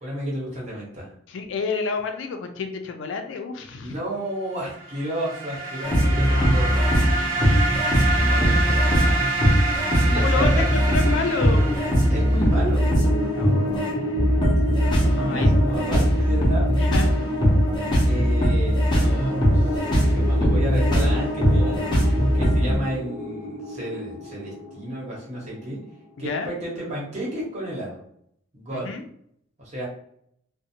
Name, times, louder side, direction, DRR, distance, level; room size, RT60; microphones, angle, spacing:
voice 1, 0.0-1.1 3.8-6.8 8.1-9.3 10.0-10.7 12.1-12.9 14.6-14.8 15.2-16.8 18.0-21.8 22.3-25.8 26.2-28.0 28.5-28.9 29.6-29.9, right 1 dB, 35° right, -5 dB, 1.0 m, -32 dB
voice 2, 1.3-4.0 6.3-7.7 10.1-11.6 13.3-14.0 15.2-15.5 16.7-17.1 26.2-26.5 28.7-29.0, left 4 dB, 70° left, 6 dB, 0.4 m, -30 dB
sound 1, 4.8-12.5, right 3 dB, 80° right, 0.8 m, -27 dB
sound 2, 5.8-22.8, equal, 25° left, 0.7 m, -20 dB
sound 3, 11.5-26.0, equal, 55° left, 0.8 m, -33 dB
2.6 x 2.0 x 2.7 m, 0.68 s
head